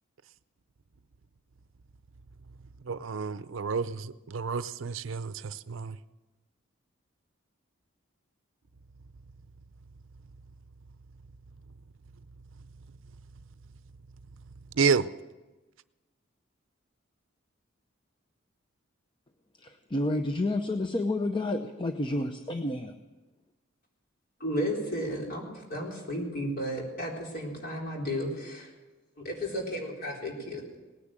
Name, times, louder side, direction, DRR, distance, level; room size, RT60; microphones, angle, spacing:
voice 1, 2.8-6.0 14.7-15.1, right 5 dB, 70° right, 15 dB, 0.5 m, -29 dB
voice 2, 19.6-22.9, left 1 dB, 25° left, 6 dB, 0.7 m, -30 dB
voice 3, 24.4-28.7 29.2-30.6, equal, 50° left, -1 dB, 4.0 m, -33 dB
18.5 x 10.0 x 7.5 m, 1.2 s
head